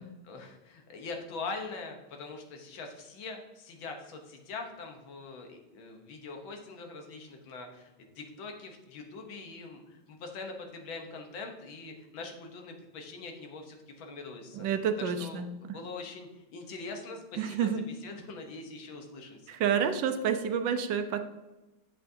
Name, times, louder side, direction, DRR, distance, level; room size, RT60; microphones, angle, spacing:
voice 1, 0.0-14.7 15.0-17.7 18.0-19.4, left 3 dB, 85° left, 3 dB, 1.8 m, -43 dB
voice 2, 14.5-15.8 17.4-17.9 19.5-21.2, right 7 dB, 75° right, 8 dB, 1.3 m, -29 dB
8.0 x 7.5 x 2.7 m, 1.0 s
omnidirectional pair, 2.1 m